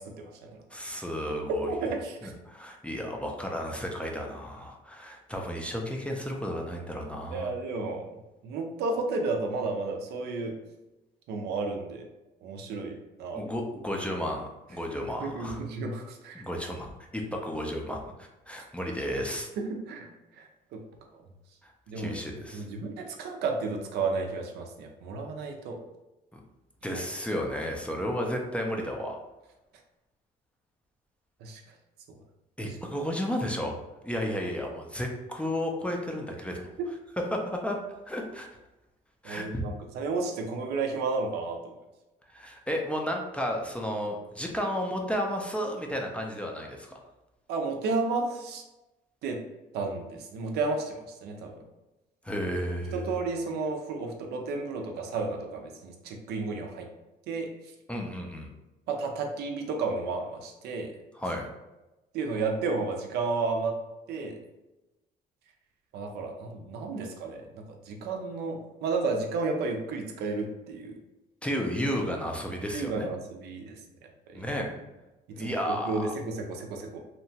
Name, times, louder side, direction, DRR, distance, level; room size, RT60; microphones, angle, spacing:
voice 1, 0.2-0.6 1.6-2.3 7.3-8.0 8.4-10.5 11.3-12.1 12.4-13.4 15.2-16.4 19.6-20.1 20.7-20.8 21.9-25.8 31.4-31.6 39.2-41.7 47.5-48.6 49.2-49.4 49.7-51.6 52.9-56.9 57.3-57.5 58.9-60.9 62.1-63.7 64.1-64.4 65.9-71.0 72.7-73.8 75.4-77.0, right 3 dB, 75° right, 3 dB, 0.5 m, -32 dB
voice 2, 0.7-1.7 2.2-7.5 13.3-15.6 16.3-19.5 22.0-22.6 26.3-26.4 26.8-29.2 32.6-33.8 34.0-36.7 37.3-37.8 38.1-38.5 39.2-39.6 42.3-47.0 52.2-53.0 57.9-58.5 61.1-61.5 71.4-73.1 74.3-74.7 75.3-76.1, equal, 5° left, 0 dB, 0.3 m, -33 dB
2.8 x 2.2 x 2.7 m, 1.0 s
cardioid pair, 110°, 17 cm